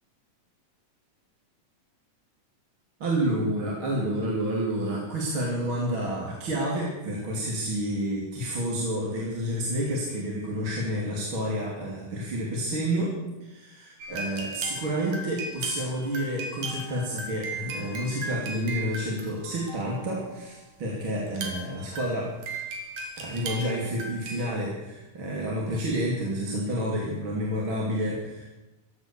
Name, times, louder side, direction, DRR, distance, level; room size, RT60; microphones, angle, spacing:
voice 1, 3.0-13.1 13.4-22.3 23.2-28.5, equal, 40° right, -3 dB, 3.5 m, -29 dB
sound 1, 14.0-20.3 21.2-24.5, right 2 dB, 85° right, 4.2 m, -37 dB
16.0 x 12.5 x 6.9 m, 1.0 s
omnidirectional pair, 3.5 m